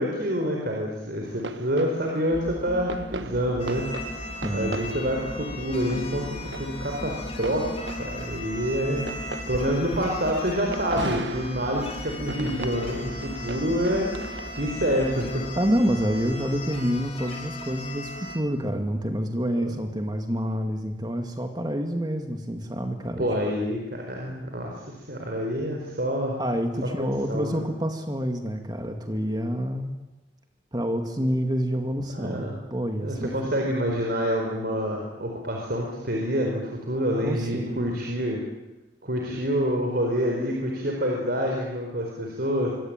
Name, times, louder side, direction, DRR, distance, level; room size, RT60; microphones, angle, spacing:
voice 1, 0.0-3.9 4.5-15.5 19.7-19.8 23.2-26.4 27.3-27.6 32.1-32.5 33.0-38.4 39.0-42.7, equal, 55° right, 0 dB, 4.7 m, -27 dB
sound 1, 1.2-14.7, right 2 dB, 80° right, 1.5 m, -39 dB
sound 2, 2.3-18.4, equal, 5° left, 2.5 m, -40 dB
sound 3, 3.6-18.4, left 2 dB, 35° left, 4.7 m, -39 dB
voice 2, 4.4-4.8 15.6-23.3 26.4-30.0 30.7-33.3 37.2-37.9, equal, 25° right, 5 dB, 2.1 m, -28 dB
25.0 x 25.0 x 9.0 m, 1.0 s
head